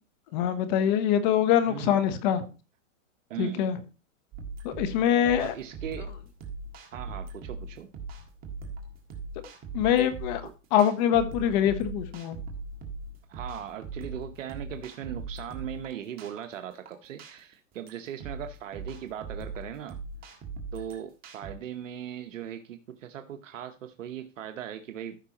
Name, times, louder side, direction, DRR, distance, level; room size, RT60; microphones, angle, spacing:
voice 1, 0.3-2.4 3.4-3.8 4.6-5.5 9.7-10.4 10.7-12.4, left 10 dB, 35° left, 11 dB, 1.0 m, -24 dB
voice 2, 1.6-2.0 3.3-3.7 5.4-6.1 6.9-7.9 10.4-10.5 13.3-20.0 20.7-25.2, right 10 dB, 75° right, 7 dB, 1.0 m, -39 dB
sound 1, 4.3-21.5, right 3 dB, 25° right, 1.6 m, -40 dB
14.0 x 5.8 x 2.9 m, 0.32 s
hypercardioid pair, 145°, 38 cm